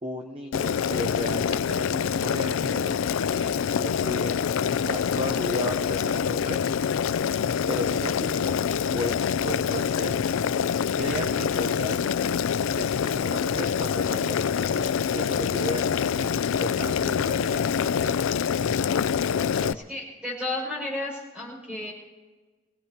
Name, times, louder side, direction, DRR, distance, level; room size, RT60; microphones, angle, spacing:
voice 1, 0.0-4.4 4.7-6.6 7.7-8.6 8.9-10.2 10.9-12.0 12.4-18.2 19.3-19.8, equal, 25° right, 3 dB, 0.9 m, -35 dB
Boiling, 0.5-19.7, left 7 dB, 80° left, 0.4 m, -26 dB
voice 2, 19.7-21.9, left 2 dB, 5° right, -5 dB, 6.1 m, -33 dB
25.0 x 17.5 x 2.9 m, 1.3 s
head